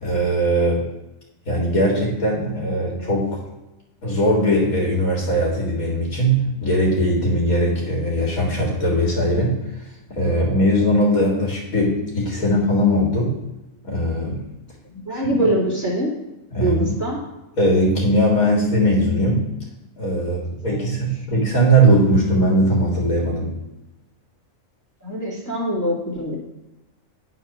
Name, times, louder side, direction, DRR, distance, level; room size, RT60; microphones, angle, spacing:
voice 1, 0.0-0.8 1.5-3.4 4.0-9.5 10.1-13.4 13.8-14.4 15.1-15.4 16.5-16.9 17.6-19.5 20.0-23.5, equal, 90° left, -3 dB, 2.5 m, -20 dB
voice 2, 14.9-16.1 16.6-17.2 20.7-20.9 25.0-26.4, right 1 dB, 10° left, -6 dB, 2.2 m, -23 dB
10.0 x 4.3 x 5.9 m, 0.99 s
omnidirectional pair, 1.4 m